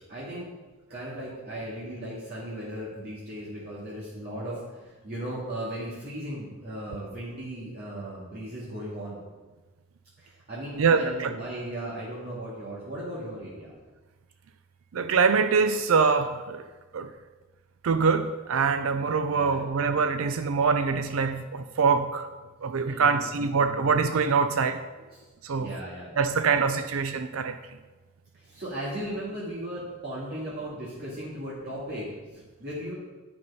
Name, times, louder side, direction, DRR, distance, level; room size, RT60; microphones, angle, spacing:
voice 1, 0.1-0.5 0.9-9.2 10.2-13.7 19.3-19.7 22.8-24.1 25.1-25.2 25.6-26.2 28.3-32.9, right 1 dB, 50° right, 2.2 m, -37 dB
voice 2, 10.8-11.3 14.9-16.6 16.9-17.1 17.8-22.3 22.6-24.8 25.4-25.7 26.2-27.6, right 5 dB, 80° right, 0.5 m, -24 dB
9.4 x 6.0 x 5.5 m
head